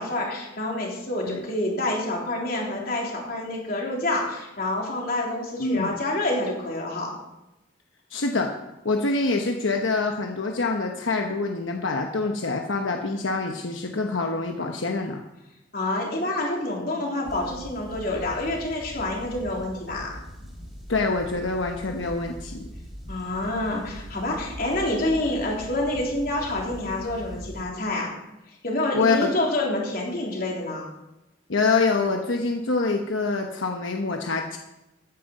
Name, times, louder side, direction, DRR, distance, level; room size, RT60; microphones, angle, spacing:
voice 1, 0.0-7.2 15.7-20.2 23.1-28.1 28.6-30.9, left 1 dB, 50° left, -2 dB, 3.5 m, -27 dB
voice 2, 5.6-5.9 8.1-8.5 8.8-15.2 20.9-22.7 28.9-29.3 31.5-34.6, left 3 dB, 85° left, 3 dB, 1.0 m, -25 dB
sound 1, 17.2-27.6, equal, ahead, 3.2 m, -41 dB
13.5 x 9.7 x 5.3 m, 0.95 s
head